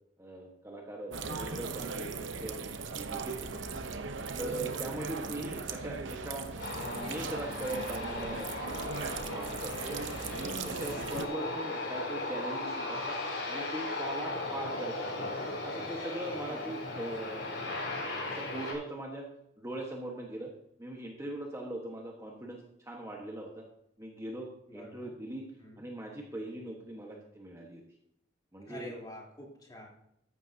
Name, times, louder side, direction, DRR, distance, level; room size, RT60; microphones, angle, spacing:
voice 1, 0.2-2.6 2.9-3.6 4.4-6.5 6.8-9.0 9.3-10.0 10.3-13.2 13.5-15.3 15.6-17.6 18.2-19.3 19.6-20.5 20.8-23.6 24.0-25.4 25.8-27.8 28.5-28.9, right 1 dB, 15° right, -1 dB, 1.4 m, -40 dB
sound 1, 1.1-11.2, right 4 dB, 90° right, 0.9 m, -38 dB
Aircraft, 6.6-18.7, left 2 dB, 70° left, 4.7 m, -37 dB
voice 2, 11.0-11.5 16.5-16.8 24.7-25.1 25.6-25.8 28.7-29.9, left 1 dB, 20° left, -3 dB, 3.6 m, -48 dB
14.0 x 11.5 x 2.9 m, 0.76 s
head